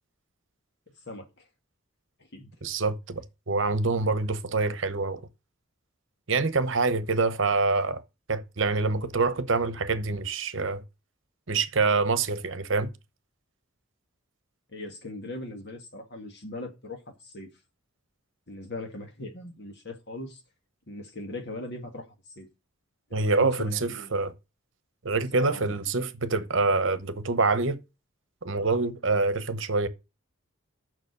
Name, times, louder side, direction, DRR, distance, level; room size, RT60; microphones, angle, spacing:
voice 1, 1.1-1.4 2.3-2.5 14.7-17.5 18.5-20.4 20.9-22.1 22.4-22.5 23.1-24.1 25.4-25.8, left 1 dB, 55° left, 1.9 m, -39 dB
voice 2, 2.6-5.2 6.3-8.0 8.3-10.8 11.5-12.9 23.1-24.3 25.0-27.8 28.4-29.9, right 3 dB, 60° right, 0.9 m, -26 dB
7.1 x 6.1 x 6.6 m
head